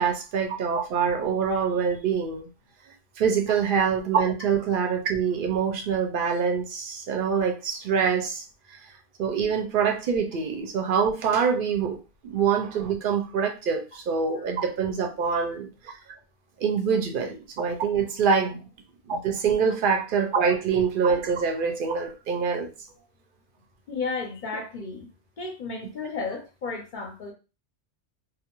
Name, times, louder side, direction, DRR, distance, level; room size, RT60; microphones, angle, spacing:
voice 1, 0.0-2.5 3.2-8.4 9.2-12.0 12.2-15.7 16.6-18.6 19.1-22.7, right 6 dB, 60° right, 4 dB, 0.6 m, -25 dB
voice 2, 15.2-15.6 23.9-25.1 25.4-27.3, left 4 dB, 50° left, 2 dB, 0.7 m, -34 dB
2.4 x 2.0 x 2.9 m, 0.30 s
omnidirectional pair, 1.2 m